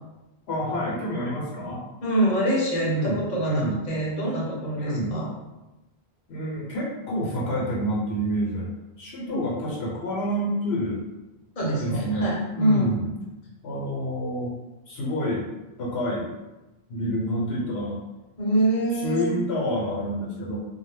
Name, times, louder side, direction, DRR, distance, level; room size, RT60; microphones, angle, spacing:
voice 1, 0.5-1.8 2.8-3.8 4.7-5.2 6.3-8.7 9.0-11.0 11.8-12.3 12.5-13.0 13.6-14.5 14.9-15.5 15.8-16.3 16.9-18.0 19.0-20.6, equal, 75° left, -4 dB, 0.9 m, -28 dB
voice 2, 2.0-5.3 9.3-9.4 11.6-13.0 18.4-19.3, right 1 dB, 45° left, -5 dB, 0.8 m, -25 dB
2.1 x 2.1 x 3.2 m, 1.0 s
omnidirectional pair, 1.1 m